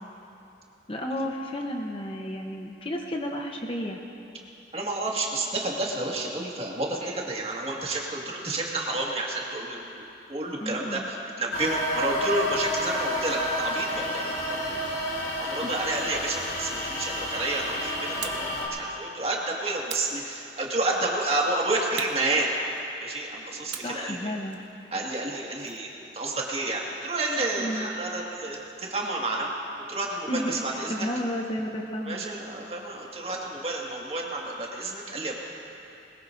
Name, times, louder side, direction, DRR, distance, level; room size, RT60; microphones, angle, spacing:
voice 1, 0.9-4.0 10.6-11.1 15.2-15.7 23.8-24.6 27.6-27.9 30.2-32.2, equal, 30° left, 1 dB, 0.9 m, -32 dB
voice 2, 4.7-22.5 23.0-24.3 24.9-29.5 29.9-30.9 32.1-35.4, right 2 dB, 35° right, -2 dB, 1.9 m, -30 dB
sound 1, 11.5-18.7, equal, 60° left, 2.9 m, -30 dB
sound 2, 18.2-18.6 19.9-20.8 22.0-23.1 23.7-25.9, right 7 dB, 80° right, 0.9 m, -41 dB
21.5 x 20.0 x 2.7 m, 2.8 s
head